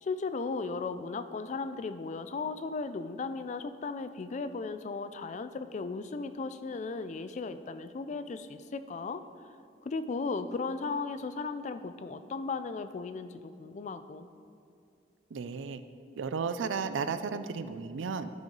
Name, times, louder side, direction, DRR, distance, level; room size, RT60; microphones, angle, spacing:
voice 1, 0.0-9.2 9.8-14.3, left 4 dB, 40° left, 10 dB, 0.3 m, -36 dB
voice 2, 15.3-15.8 16.2-18.3, right 5 dB, 85° right, 11 dB, 0.4 m, -34 dB
11.5 x 5.4 x 3.9 m, 2.4 s
head